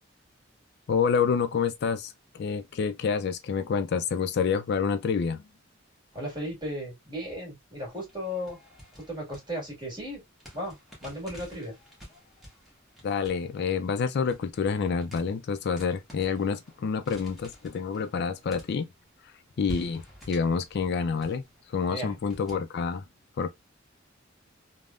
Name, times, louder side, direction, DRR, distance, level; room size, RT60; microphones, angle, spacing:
voice 1, 0.9-5.4 13.0-18.9 19.6-21.4 21.7-23.0 23.4-23.5, left 6 dB, 55° left, 0.3 m, -28 dB
voice 2, 6.1-8.6 9.1-10.2 10.5-11.7 21.9-22.2, equal, 25° right, 1.8 m, -35 dB
sound 1, 7.8-10.1 10.4-19.1 19.6-22.6, equal, ahead, 1.1 m, -50 dB
3.4 x 2.1 x 2.4 m
head